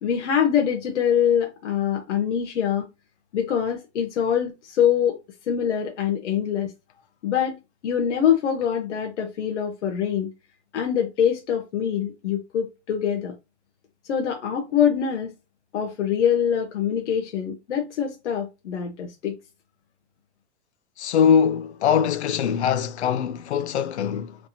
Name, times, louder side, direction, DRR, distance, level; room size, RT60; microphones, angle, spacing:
voice 1, 0.0-2.8 3.3-5.2 5.5-6.7 7.2-10.3 10.7-13.3 14.1-15.3 15.7-19.3, left 8 dB, 85° left, 1.4 m, -24 dB
voice 2, 21.0-24.4, left 7 dB, 70° left, 0.8 m, -22 dB
5.0 x 3.6 x 2.8 m
supercardioid pair, 180°, 34 cm